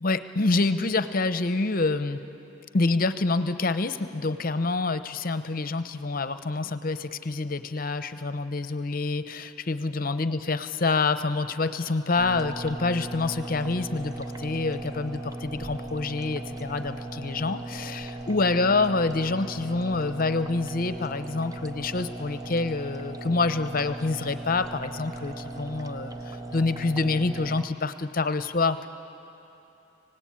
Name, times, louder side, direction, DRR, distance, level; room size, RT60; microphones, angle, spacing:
voice 1, 0.0-2.2 2.7-28.9, left 3 dB, 50° left, 11 dB, 0.8 m, -27 dB
sound 1, 12.2-27.6, right 2 dB, 20° right, 0.7 m, -38 dB
25.5 x 18.0 x 8.6 m, 2.9 s
head